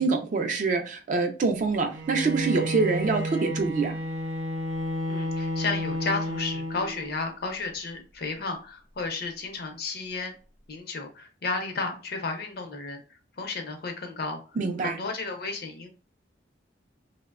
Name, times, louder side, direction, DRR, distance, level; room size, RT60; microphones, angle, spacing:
voice 1, 0.0-4.0 14.6-15.0, right 4 dB, 45° right, 0.3 m, -25 dB
Bowed string instrument, 1.9-7.3, equal, 90° right, 0.6 m, -31 dB
voice 2, 5.1-10.3 10.7-13.0 13.4-15.9, left 3 dB, 60° left, 0.6 m, -33 dB
2.8 x 2.1 x 2.3 m
head